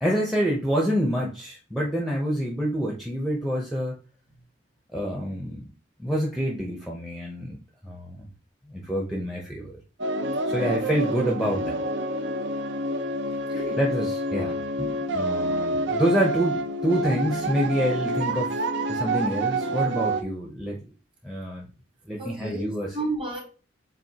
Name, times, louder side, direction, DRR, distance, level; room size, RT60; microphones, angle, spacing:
voice 1, 0.0-4.0 4.9-5.7 6.0-7.6 7.8-8.3 8.7-9.7 10.5-11.8 13.8-20.8 21.2-21.7 22.1-23.0, equal, ahead, 0.7 m, -27 dB
sound 1, 10.0-20.2, right 1 dB, 55° right, 0.6 m, -28 dB
voice 2, 22.2-22.7 22.9-23.4, right 2 dB, 25° right, 1.3 m, -31 dB
7.5 x 2.5 x 2.8 m
head